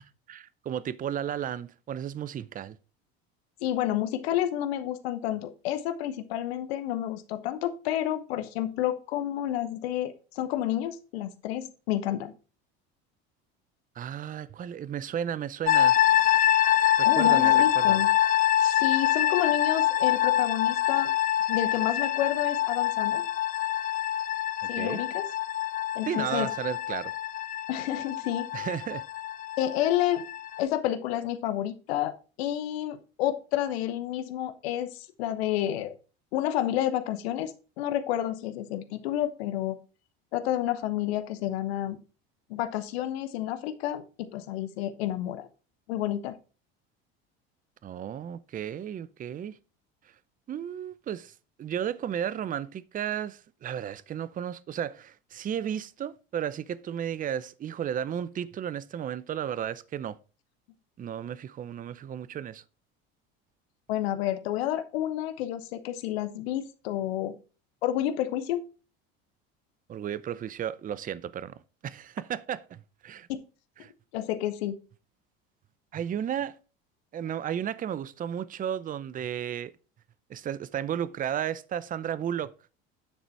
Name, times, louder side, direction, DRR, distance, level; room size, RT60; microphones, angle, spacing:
voice 1, 0.3-2.8 14.0-16.0 17.0-18.1 24.6-25.0 26.0-27.1 28.5-29.1 47.8-49.6 50.5-60.2 61.0-62.6 69.9-71.5 71.8-73.3 73.8-73.9 75.9-76.6 77.1-79.7 80.3-82.5, right 9 dB, 30° right, 0.5 m, -33 dB
voice 2, 3.6-12.3 17.0-18.1 18.6-21.1 21.5-23.2 24.7-25.2 25.9-26.5 27.7-28.5 29.6-30.2 30.6-35.9 36.3-39.8 40.3-42.0 42.5-45.5 45.9-46.4 63.9-67.4 67.8-68.6 73.3-73.4 74.1-74.8, left 12 dB, 85° left, 0.9 m, -30 dB
sound 1, 15.7-30.6, left 12 dB, 30° left, 0.4 m, -25 dB
9.4 x 4.0 x 4.5 m
supercardioid pair, 95°, 30 cm